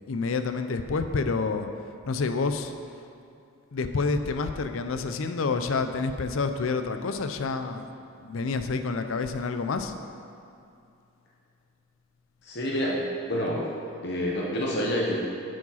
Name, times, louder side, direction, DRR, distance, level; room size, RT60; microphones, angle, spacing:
voice 1, 0.1-1.7 2.1-2.7 3.7-7.8 8.2-9.9, left 4 dB, 70° left, 8 dB, 0.5 m, -28 dB
voice 2, 12.4-13.7 14.0-15.2, equal, 50° left, -3 dB, 0.9 m, -28 dB
7.8 x 5.1 x 5.6 m, 2.5 s
head